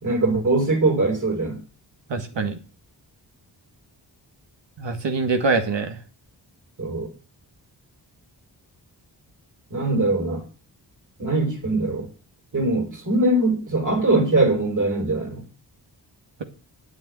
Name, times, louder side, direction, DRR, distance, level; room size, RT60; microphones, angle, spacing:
voice 1, 0.0-1.6 6.8-7.1 9.7-10.4 11.2-12.1 12.5-15.4, right 2 dB, 45° right, 3.8 m, -22 dB
voice 2, 2.1-2.6 4.8-6.0, right 4 dB, 80° right, 2.4 m, -24 dB
10.0 x 7.7 x 9.4 m
wide cardioid pair, 105°, 43 cm